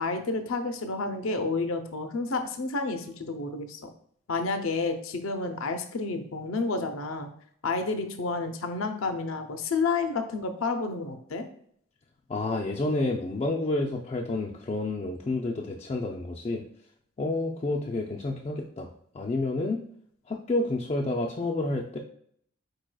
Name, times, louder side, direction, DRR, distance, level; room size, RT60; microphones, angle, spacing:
voice 1, 0.0-3.9 4.3-7.3 7.6-11.4, left 3 dB, 85° left, 7 dB, 0.5 m, -30 dB
voice 2, 12.3-16.6 17.2-19.8 20.3-22.0, left 2 dB, 30° left, -2 dB, 0.3 m, -29 dB
4.7 x 4.6 x 2.2 m, 0.67 s
head